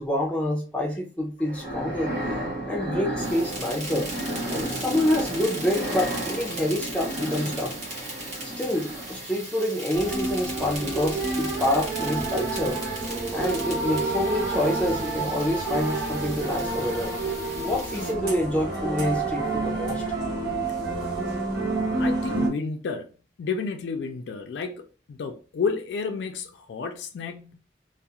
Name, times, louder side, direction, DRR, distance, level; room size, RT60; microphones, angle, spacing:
voice 1, 0.0-2.1 2.7-4.1 4.5-7.8 8.6-12.8 13.3-17.1 17.6-20.0, left 1 dB, 5° left, 0.5 m, -27 dB
Something Big Trying To Escape, 1.4-9.5, right 1 dB, 20° right, 1.1 m, -33 dB
sound 1, 3.2-18.1, right 2 dB, 40° right, 0.9 m, -38 dB
sound 2, 9.9-22.5, right 3 dB, 75° right, 1.0 m, -29 dB
voice 2, 22.0-27.5, left 5 dB, 85° left, 0.3 m, -31 dB
2.3 x 2.0 x 2.8 m
head